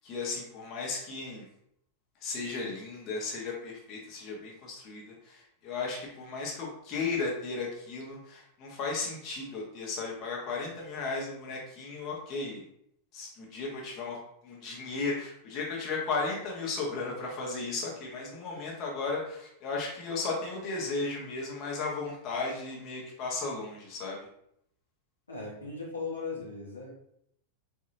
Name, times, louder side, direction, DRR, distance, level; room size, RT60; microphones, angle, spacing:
voice 1, 0.0-1.4 2.2-12.6 13.1-14.2 14.4-24.2, left 3 dB, 35° left, -2 dB, 0.9 m, -35 dB
voice 2, 25.3-26.9, left 4 dB, 75° left, -3 dB, 0.9 m, -37 dB
3.9 x 2.6 x 2.6 m, 0.71 s
figure-of-eight pair, 90°, 0 cm